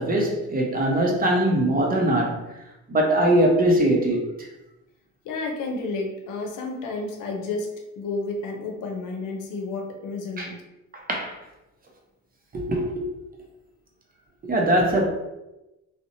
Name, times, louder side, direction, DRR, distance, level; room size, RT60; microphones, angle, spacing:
voice 1, 0.0-2.4 2.9-4.5 10.4-10.5 10.9-11.4 12.5-13.1 14.4-15.1, right 1 dB, 30° right, 0 dB, 0.6 m, -22 dB
voice 2, 5.2-7.7 8.0-10.6, left 3 dB, 85° left, 2 dB, 0.6 m, -31 dB
2.6 x 2.0 x 2.6 m, 0.97 s
cardioid pair, 90°, 30 cm